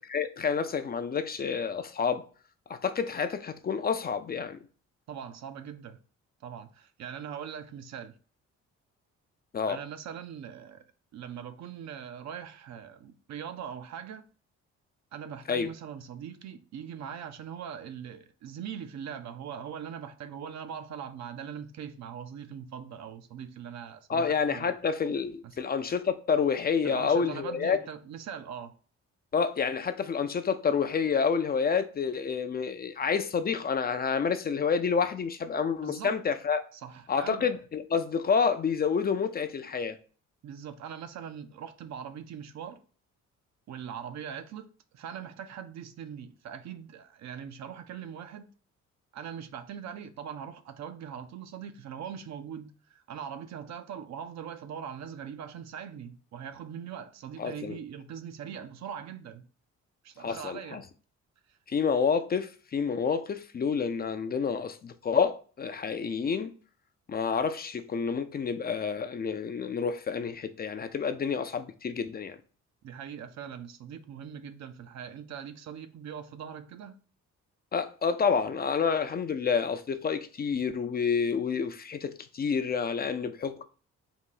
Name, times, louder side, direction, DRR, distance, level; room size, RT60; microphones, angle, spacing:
voice 1, 0.1-2.2 2.7-4.6 9.5-9.8 15.5-15.7 24.1-27.8 29.3-36.6 37.1-40.0 57.4-57.8 60.2-60.8 61.7-66.5 67.1-72.4 77.7-83.6, left 6 dB, 30° left, 0.4 m, -29 dB
voice 2, 5.1-6.0 6.4-8.2 9.6-10.8 11.1-14.2 15.1-24.7 25.4-25.6 26.8-28.7 35.8-36.2 36.7-37.5 40.4-42.8 43.7-48.5 49.1-59.5 60.0-60.8 61.5-61.6 72.8-76.9, right 8 dB, 65° right, 0.6 m, -41 dB
4.0 x 2.4 x 3.7 m
cardioid pair, 90°, 30 cm